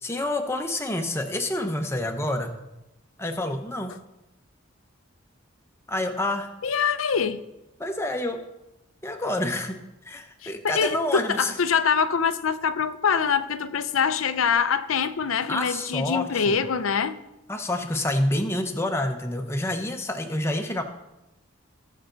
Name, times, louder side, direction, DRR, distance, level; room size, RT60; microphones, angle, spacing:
voice 1, 0.0-2.5 3.2-4.0 5.9-6.5 7.8-8.4 9.0-11.5 15.5-16.6 17.5-20.8, left 1 dB, 15° left, 0.9 m, -28 dB
voice 2, 6.6-7.4 10.4-17.2, left 6 dB, 85° left, 0.6 m, -24 dB
18.5 x 6.5 x 3.9 m
head